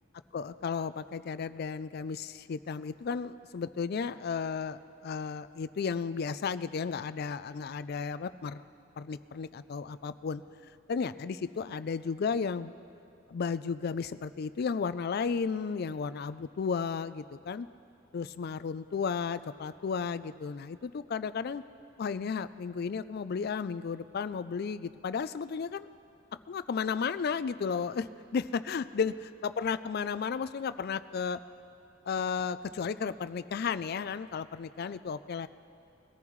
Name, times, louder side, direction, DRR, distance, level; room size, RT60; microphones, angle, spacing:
voice 1, 0.3-8.6 9.0-10.4 10.9-12.7 13.3-17.7 18.1-21.6 22.0-25.9 26.5-28.1 28.3-29.1 29.4-31.4 32.1-35.5, left 5 dB, 50° left, 14 dB, 0.3 m, -33 dB
22.0 x 14.5 x 3.1 m, 2.6 s
head